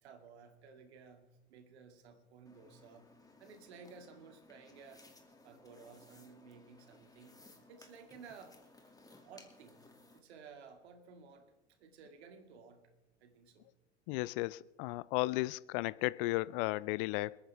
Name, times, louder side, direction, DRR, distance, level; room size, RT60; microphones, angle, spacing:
voice 1, 0.0-3.1 3.4-5.1 5.4-7.4 7.7-8.6 9.2-9.8 10.1-11.5 11.8-12.9 13.2-13.7, right 5 dB, 70° right, 2.5 m, -55 dB
sound 1, 2.5-10.2, left 2 dB, 10° left, 2.5 m, -61 dB
voice 2, 14.1-17.4, left 21 dB, 50° left, 0.5 m, -34 dB
28.5 x 9.6 x 3.5 m
figure-of-eight pair, 75°, 34 cm